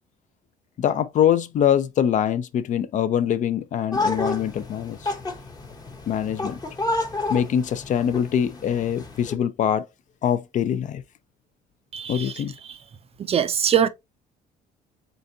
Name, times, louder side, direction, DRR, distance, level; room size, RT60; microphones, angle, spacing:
voice 1, 0.8-5.1 6.1-6.6 7.3-9.8 10.2-11.0 12.1-12.5, left 9 dB, 50° left, 0.4 m, -23 dB
sound 1, 3.9-9.3, left 2 dB, 20° left, 0.8 m, -30 dB
voice 2, 11.9-12.4 12.7-12.8 13.3-13.9, right 8 dB, 35° right, 0.4 m, -22 dB
3.9 x 3.4 x 2.6 m
cardioid pair, 110°, 17 cm